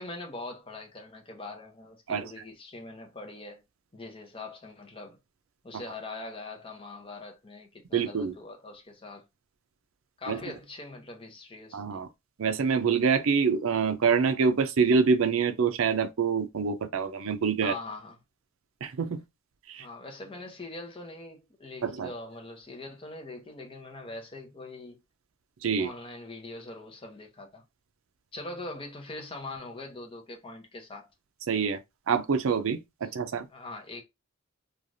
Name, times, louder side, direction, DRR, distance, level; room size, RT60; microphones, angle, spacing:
voice 1, 0.0-3.6 3.9-5.2 5.6-9.2 10.2-12.0 17.6-18.2 19.8-25.0 25.8-27.6 28.3-31.1 33.5-34.0, left 2 dB, 25° left, 0.7 m, -42 dB
voice 2, 7.9-8.3 10.3-10.4 11.7-12.1 12.4-17.7 18.8-19.2 19.7-19.9 21.8-22.1 25.6-25.9 31.5-31.8 32.1-33.5, right 5 dB, 70° right, 0.5 m, -26 dB
3.2 x 2.4 x 2.5 m
head